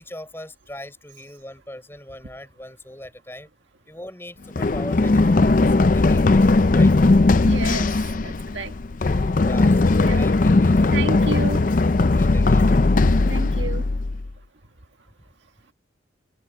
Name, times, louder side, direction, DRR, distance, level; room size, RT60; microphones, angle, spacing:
voice 1, 0.0-3.5 3.9-6.9 9.4-11.0 12.0-12.7, left 1 dB, 10° left, 6.0 m, -40 dB
Run, 4.6-14.3, left 3 dB, 45° left, 0.5 m, -18 dB
voice 2, 7.4-7.9 8.2-8.7 10.0-10.3 10.9-11.6 13.3-13.8, right 3 dB, 75° right, 1.7 m, -30 dB
head